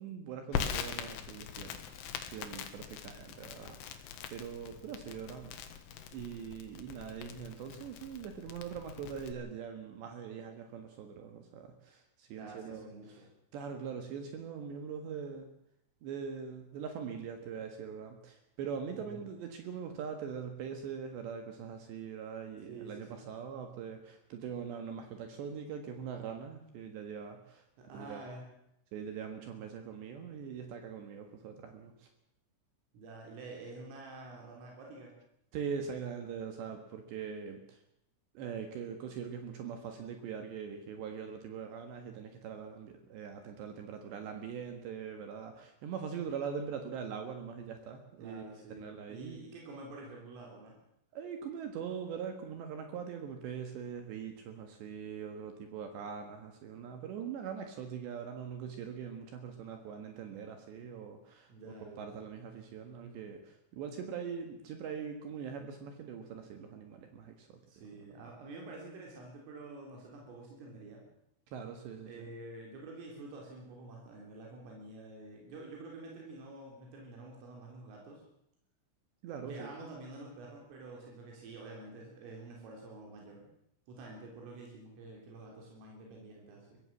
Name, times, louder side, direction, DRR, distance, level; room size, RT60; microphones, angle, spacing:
voice 1, 0.0-4.0 4.3-5.5 6.1-12.9 13.5-15.5 16.0-27.6 27.9-28.2 28.9-32.1 35.5-37.8 38.3-48.5 48.8-49.4 51.1-61.5 61.8-67.6 71.5-72.3 79.2-79.7, right 7 dB, 65° right, 5 dB, 3.5 m, -42 dB
Crackle, 0.5-9.3, left 8 dB, 75° left, 4.0 m, -42 dB
voice 2, 12.4-13.3 18.9-19.3 22.7-23.2 27.8-28.5 32.9-35.1 48.2-50.8 61.5-62.2 67.7-71.0 72.0-78.2 79.4-83.5 83.9-86.8, right 2 dB, 85° right, -1 dB, 6.1 m, -48 dB
23.0 x 17.0 x 7.4 m, 0.79 s
omnidirectional pair, 5.7 m